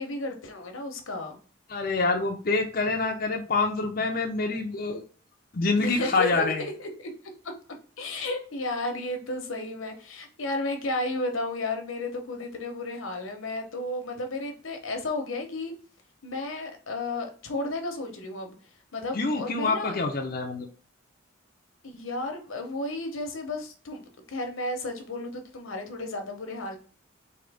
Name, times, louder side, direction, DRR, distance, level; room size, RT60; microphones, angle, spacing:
voice 1, 0.0-1.4 2.8-2.9 5.8-7.1 8.0-15.7 16.2-18.5 18.9-20.0 21.8-24.0 24.3-26.8, left 2 dB, 90° left, 4 dB, 0.9 m, -33 dB
voice 2, 1.7-5.0 5.5-6.6 19.1-20.7, left 3 dB, 45° left, 1 dB, 0.5 m, -26 dB
3.8 x 2.8 x 3.4 m, 0.39 s
head